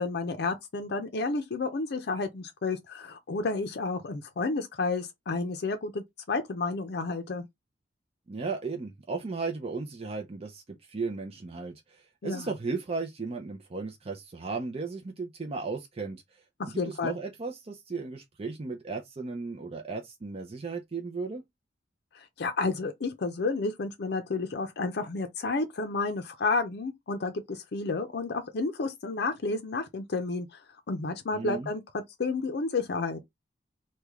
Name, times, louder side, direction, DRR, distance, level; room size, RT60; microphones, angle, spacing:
voice 1, 0.0-7.5 12.2-12.5 16.6-17.2 22.2-30.6 30.9-31.8 32.2-33.2, left 3 dB, 65° left, 0.5 m, -31 dB
voice 2, 8.3-10.6 10.9-21.4 31.3-31.7, right 4 dB, 35° right, 0.5 m, -35 dB
3.2 x 2.3 x 3.5 m
head